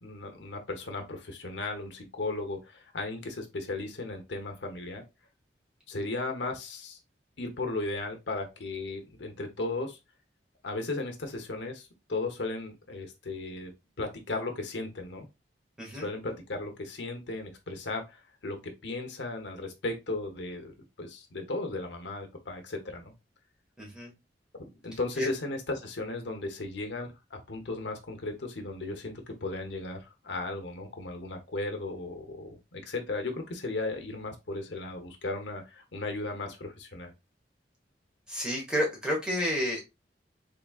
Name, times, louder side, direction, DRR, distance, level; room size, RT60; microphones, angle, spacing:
voice 1, 0.0-5.0 5.9-7.0 7.4-10.0 10.6-13.7 14.0-15.3 15.9-20.7 21.0-23.1 24.5-37.1, left 2 dB, 80° left, 5 dB, 1.0 m, -36 dB
voice 2, 23.8-24.1 25.2-25.3 38.3-39.8, equal, 5° right, -2 dB, 1.5 m, -30 dB
3.6 x 3.5 x 2.4 m, 0.24 s
head